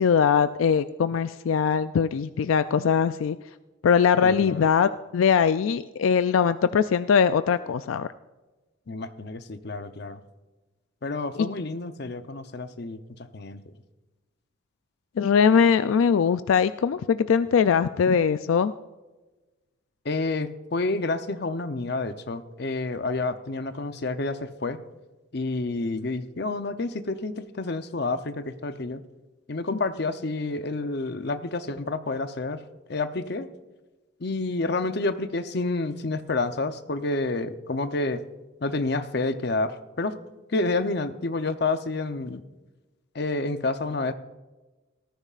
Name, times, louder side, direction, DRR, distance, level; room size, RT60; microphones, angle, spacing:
voice 1, 0.0-3.4 3.8-8.1 15.2-18.7 29.7-29.8, left 6 dB, 80° left, 12 dB, 0.4 m, -21 dB
voice 2, 4.2-4.7 8.9-10.2 11.0-13.0 13.3-13.7 20.0-24.8 25.3-29.0 29.5-32.6 32.9-33.5 34.2-38.2 38.6-40.1 40.5-42.4 43.1-44.1, left 3 dB, 55° left, 10 dB, 0.7 m, -29 dB
18.5 x 14.0 x 2.5 m, 1.2 s
head